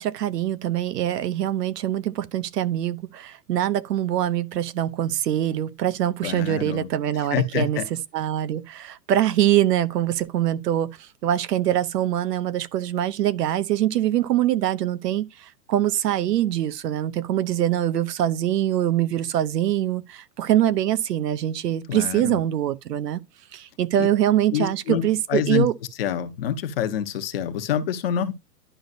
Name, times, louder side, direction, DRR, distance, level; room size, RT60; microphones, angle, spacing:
voice 1, 0.0-23.2 23.5-25.7, right 12 dB, 70° right, 0.8 m, -24 dB
voice 2, 6.2-6.9 7.2-7.8 21.9-22.4 23.9-24.1 24.5-25.0 25.3-25.7 26.0-28.3, left 9 dB, 35° left, 0.8 m, -26 dB
11.0 x 5.1 x 2.5 m
hypercardioid pair, 165°, 49 cm